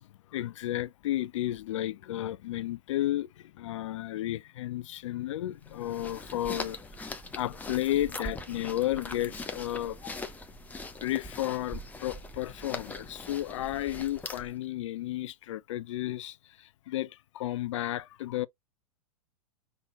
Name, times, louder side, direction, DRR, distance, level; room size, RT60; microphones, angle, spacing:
voice 1, 0.0-7.1 7.3-10.2 11.0-18.5, left 14 dB, 50° left, 0.4 m, -33 dB
sound 1, 5.6-14.6, left 2 dB, 10° left, 0.7 m, -41 dB
5.7 x 2.8 x 2.9 m
figure-of-eight pair, 100°, 20 cm